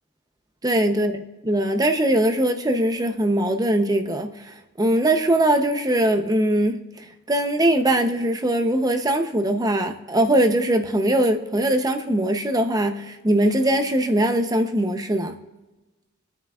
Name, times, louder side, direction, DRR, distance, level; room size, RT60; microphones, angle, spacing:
voice 1, 0.6-1.1 1.4-15.3, right 1 dB, 20° right, 6 dB, 0.8 m, -21 dB
27.5 x 9.5 x 2.5 m, 1.1 s
head